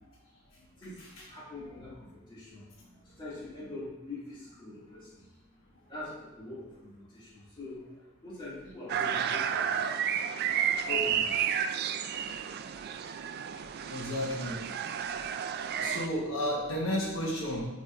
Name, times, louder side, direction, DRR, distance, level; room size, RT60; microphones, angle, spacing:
voice 1, 0.8-5.2 5.9-7.8 8.2-9.6 10.8-11.3, left 2 dB, 25° left, -8 dB, 2.1 m, -43 dB
sound 1, 8.9-16.1, right 8 dB, 50° right, 0.3 m, -31 dB
voice 2, 13.9-14.6 15.8-17.7, equal, 80° left, -3 dB, 1.2 m, -32 dB
7.9 x 5.0 x 2.5 m, 1.0 s
head